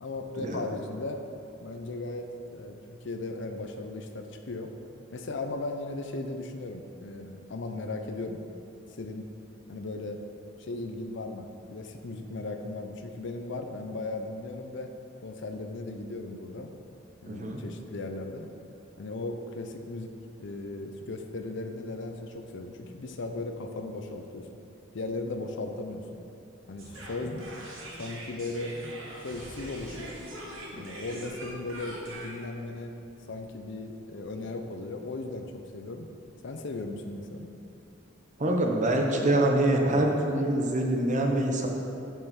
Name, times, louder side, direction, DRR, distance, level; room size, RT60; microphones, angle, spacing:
voice 1, 0.0-1.2 1.6-4.7 5.1-8.4 9.0-9.2 9.7-10.2 10.6-14.9 15.2-16.7 17.2-18.5 19.0-20.1 20.4-24.5 24.9-26.0 26.7-27.4 27.9-28.8 29.2-30.1 30.7-32.9 33.3-36.1 36.4-37.5, left 2 dB, 65° left, 5 dB, 0.6 m, -37 dB
voice 2, 17.3-17.6 38.4-41.7, right 1 dB, 40° right, 1 dB, 0.9 m, -25 dB
sound 1, 26.8-33.9, right 1 dB, 85° right, 1.8 m, -43 dB
7.6 x 5.5 x 5.7 m, 2.7 s
head